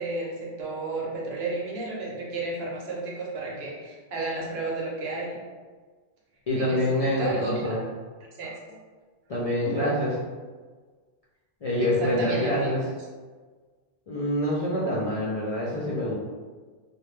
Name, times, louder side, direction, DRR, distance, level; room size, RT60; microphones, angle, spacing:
voice 1, 0.0-5.4 6.6-7.6 8.4-8.8 9.6-9.8 11.8-12.7, right 2 dB, 75° right, -3 dB, 0.9 m, -32 dB
voice 2, 6.5-7.8 9.3-10.1 11.6-12.8 14.1-16.2, left 1 dB, 55° left, -7 dB, 0.4 m, -26 dB
2.1 x 2.1 x 3.1 m, 1.4 s
omnidirectional pair, 1.1 m